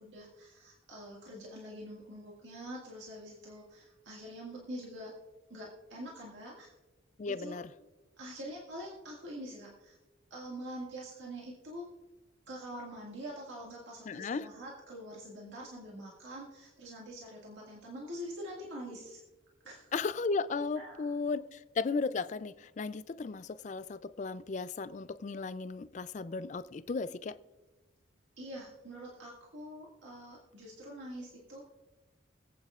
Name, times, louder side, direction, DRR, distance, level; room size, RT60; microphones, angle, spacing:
voice 1, 0.0-5.1 5.5-6.8 7.3-7.6 8.2-10.0 10.3-11.9 12.5-19.2 19.6-19.9 20.8-21.4 28.4-31.7, equal, 70° right, 1.9 m, -45 dB
voice 2, 7.2-7.7 14.1-14.5 19.9-27.4, left 4 dB, 40° left, 0.3 m, -35 dB
25.0 x 8.6 x 2.4 m
head